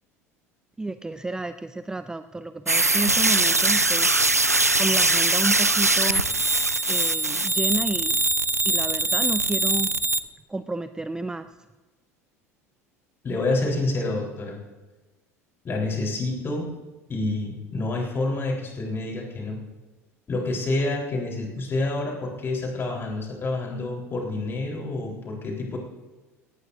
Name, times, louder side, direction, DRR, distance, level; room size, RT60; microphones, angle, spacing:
voice 1, 0.8-4.1 4.8-6.2 6.9-8.2 8.6-9.9 10.5-11.5, right 2 dB, 10° right, 12 dB, 0.4 m, -31 dB
sound 1, 2.7-10.2, right 2 dB, 90° right, 0.5 m, -22 dB
voice 2, 13.2-14.6 15.6-16.7 17.1-19.6 20.3-25.8, left 2 dB, 30° left, 0 dB, 4.1 m, -28 dB
18.0 x 18.0 x 2.7 m, 1.2 s
figure-of-eight pair, 70°, 8 cm